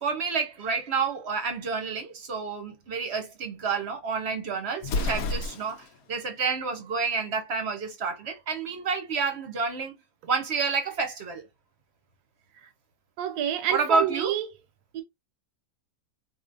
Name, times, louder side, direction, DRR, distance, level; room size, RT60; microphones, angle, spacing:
voice 1, 0.0-9.9 10.3-11.5 13.7-14.3, right 5 dB, 50° right, 1.0 m, -29 dB
Explosion, 4.8-6.0, left 2 dB, 75° left, 1.1 m, -30 dB
voice 2, 13.2-14.5 14.9-15.0, right 10 dB, 80° right, 1.1 m, -27 dB
4.2 x 2.7 x 2.5 m
omnidirectional pair, 1.6 m